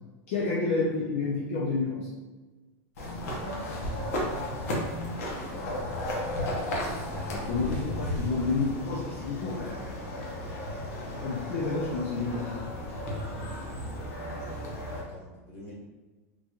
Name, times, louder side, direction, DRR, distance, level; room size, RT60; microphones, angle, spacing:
voice 1, 0.3-2.1 7.3-9.8 11.2-12.5, left 3 dB, 50° left, -4 dB, 0.6 m, -29 dB
sound 1, 3.0-15.0, left 1 dB, 85° left, 0.9 m, -34 dB
voice 2, 5.4-5.9 14.9-15.7, right 1 dB, 30° left, -7 dB, 1.4 m, -44 dB
3.8 x 3.0 x 2.4 m, 1.2 s
supercardioid pair, 180°, 8 cm